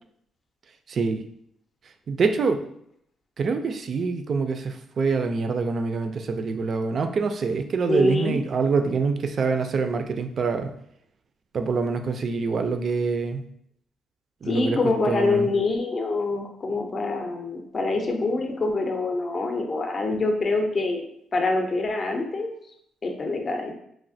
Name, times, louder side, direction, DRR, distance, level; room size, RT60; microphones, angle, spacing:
voice 1, 0.9-1.2 2.1-2.6 3.4-10.7 11.5-13.4 14.4-14.8 15.1-15.5, right 4 dB, 50° right, 7 dB, 0.3 m, -25 dB
voice 2, 7.9-8.4 14.5-21.1 21.3-22.5 23.0-23.7, left 3 dB, 40° left, 3 dB, 0.5 m, -25 dB
3.1 x 2.4 x 2.6 m, 0.72 s
cardioid pair, 90°, 0 cm